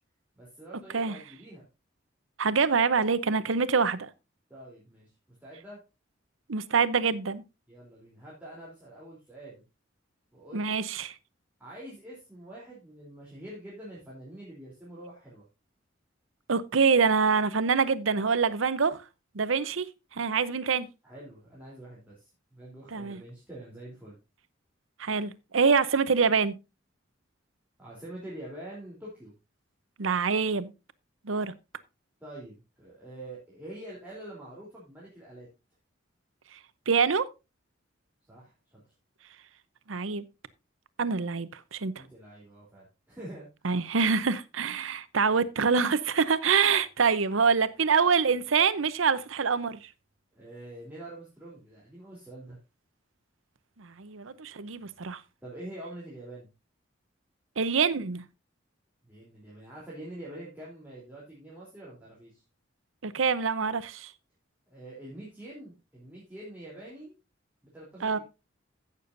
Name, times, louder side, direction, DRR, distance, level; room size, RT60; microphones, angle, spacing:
voice 1, 0.3-1.7 4.5-5.8 7.7-9.6 10.3-10.7 11.6-15.4 21.0-24.2 27.8-29.3 32.2-35.5 38.3-38.8 42.0-43.8 50.3-52.6 55.4-56.5 59.0-62.4 64.7-67.1 67.6-68.2, right 1 dB, 10° right, 3.3 m, -45 dB
voice 2, 2.4-4.1 6.5-7.4 10.5-11.1 16.5-19.0 19.3-19.9 20.1-20.9 22.9-23.2 25.0-26.5 30.0-30.7 31.2-31.5 36.9-37.3 39.9-40.2 41.0-41.9 43.6-49.9 53.8-55.2 57.6-58.2 63.0-64.1 68.0-68.2, right 5 dB, 90° right, 0.8 m, -25 dB
15.5 x 6.9 x 2.6 m
head